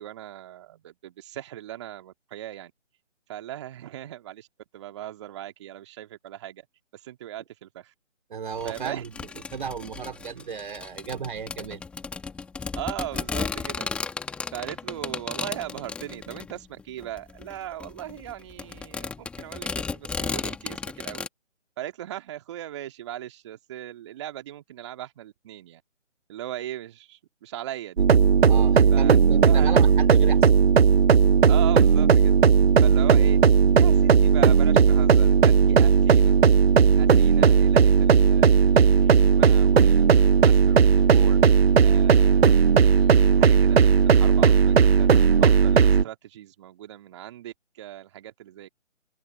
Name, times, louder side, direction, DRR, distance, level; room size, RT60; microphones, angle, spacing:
voice 1, 0.0-2.7 3.3-4.5 4.7-6.7 6.9-7.9 8.6-9.0 12.7-13.9 14.5-21.2 21.8-25.8 26.3-28.0 28.9-29.8 31.5-32.4 32.8-33.4 33.8-36.3 37.0-42.5 42.8-48.7, right 12 dB, 25° right, 2.0 m, -38 dB
voice 2, 8.3-11.8 28.5-30.5, right 7 dB, 40° right, 2.7 m, -34 dB
sound 1, 8.6-21.3, left 4 dB, 5° left, 1.7 m, -34 dB
sound 2, 28.0-46.0, right 6 dB, 55° right, 0.7 m, -17 dB
open air
figure-of-eight pair, 150°, 37 cm